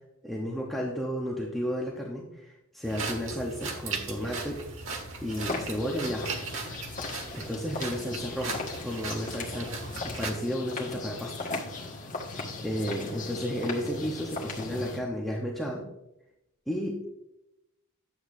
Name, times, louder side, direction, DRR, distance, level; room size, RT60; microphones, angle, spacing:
voice 1, 0.2-4.6 5.2-6.3 7.3-11.5 12.6-15.9 16.7-17.1, equal, ahead, -3 dB, 0.9 m, -33 dB
sound 1, 2.8-10.3, right 4 dB, 65° right, 1.4 m, -38 dB
sound 2, 5.3-15.0, left 3 dB, 35° left, 1.5 m, -38 dB
10.5 x 7.8 x 2.6 m, 0.90 s
head